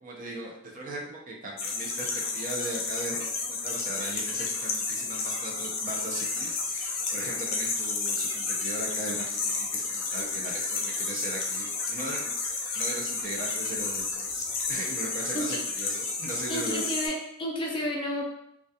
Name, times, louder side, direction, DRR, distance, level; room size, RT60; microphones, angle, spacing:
voice 1, 0.0-16.8, right 2 dB, 45° right, -1 dB, 0.5 m, -38 dB
sound 1, 1.6-17.1, left 4 dB, 80° left, 0.5 m, -31 dB
voice 2, 16.5-18.2, equal, 25° left, -1 dB, 0.4 m, -31 dB
2.3 x 2.2 x 2.7 m, 0.75 s
head